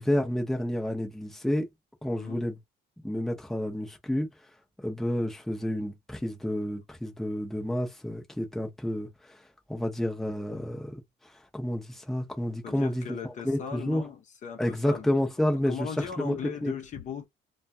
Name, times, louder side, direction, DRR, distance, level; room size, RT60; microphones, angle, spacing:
voice 1, 0.0-1.7 2.0-2.6 3.0-4.3 4.8-9.4 9.7-11.0 11.5-14.0 14.6-16.7, left 1 dB, ahead, 0.7 m, -30 dB
voice 2, 2.1-2.4 12.6-15.1 15.4-17.3, left 7 dB, 45° left, 0.7 m, -39 dB
2.3 x 2.2 x 2.7 m
cardioid pair, 110°, 17 cm